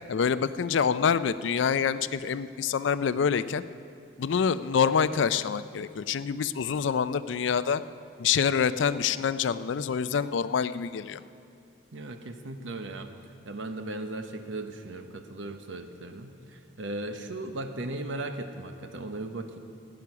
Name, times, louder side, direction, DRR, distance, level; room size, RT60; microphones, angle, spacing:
voice 1, 0.1-3.6 4.2-7.8 8.2-11.2, left 6 dB, 70° left, 15 dB, 0.4 m, -26 dB
voice 2, 11.9-19.6, right 2 dB, 80° right, 7 dB, 0.9 m, -37 dB
15.0 x 9.7 x 6.0 m, 2.5 s
head